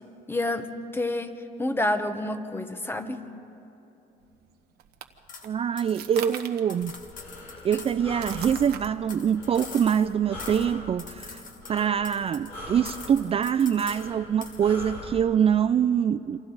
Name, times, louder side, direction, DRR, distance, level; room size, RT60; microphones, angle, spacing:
voice 1, 0.3-0.7 0.9-1.3 1.6-3.2, left 1 dB, 15° left, 8 dB, 1.3 m, -28 dB
sound 1, 4.2-12.8, right 10 dB, 70° right, 1.2 m, -45 dB
sound 2, 5.3-5.5 5.8-8.0 8.3-10.1 10.4-10.7 11.0-12.6 12.8-14.1 14.4-14.6, left 5 dB, 50° left, 2.1 m, -44 dB
voice 2, 5.4-6.9 7.6-11.4 11.7-16.4, right 8 dB, 35° right, 12 dB, 0.4 m, -24 dB
Breathing, 6.8-15.2, left 1 dB, 85° left, 5.8 m, -42 dB
28.5 x 26.0 x 4.0 m, 2.9 s
cardioid pair, 110°, 17 cm